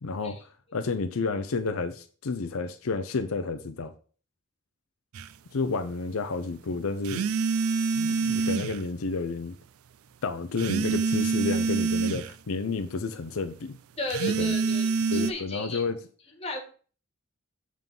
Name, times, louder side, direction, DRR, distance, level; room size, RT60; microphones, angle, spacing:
voice 1, 0.0-0.4 0.7-3.9 5.5-7.3 7.9-9.6 10.2-13.7 14.4-14.6 15.1-16.0, left 4 dB, 80° left, 0.6 m, -30 dB
sound 1, 5.1-5.3 7.0-8.8 10.6-12.3 14.1-15.3, right 5 dB, 85° right, 0.4 m, -26 dB
voice 2, 14.0-15.8 16.4-16.6, left 1 dB, 30° left, 1.4 m, -34 dB
7.5 x 3.7 x 5.3 m
head